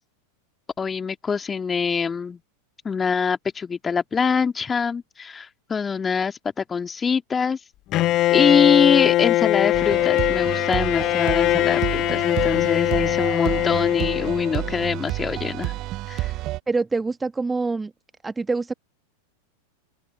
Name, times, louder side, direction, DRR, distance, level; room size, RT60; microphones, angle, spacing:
voice 1, 0.8-2.4 2.8-7.6 8.3-15.7 16.1-16.3, left 6 dB, 15° left, 2.2 m, -24 dB
Bowed string instrument, 7.9-14.8, left 16 dB, 35° left, 0.9 m, -21 dB
sound 1, 9.7-16.6, right 17 dB, 35° right, 1.2 m, -30 dB
voice 2, 16.7-17.9 18.2-18.7, right 3 dB, 10° right, 1.6 m, -25 dB
open air
figure-of-eight pair, 90°, 0 cm